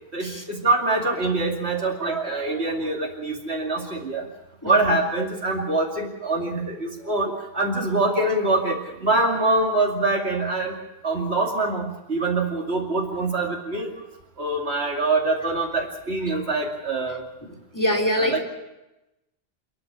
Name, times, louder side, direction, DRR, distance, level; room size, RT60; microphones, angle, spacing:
voice 1, 0.1-4.2 4.6-10.7 11.0-13.9 14.4-17.2 18.1-18.4, right 2 dB, 85° right, -1 dB, 2.9 m, -24 dB
voice 2, 4.6-4.9 17.7-18.4, equal, 15° left, 0 dB, 3.2 m, -24 dB
28.5 x 10.5 x 9.9 m, 0.96 s
omnidirectional pair, 1.1 m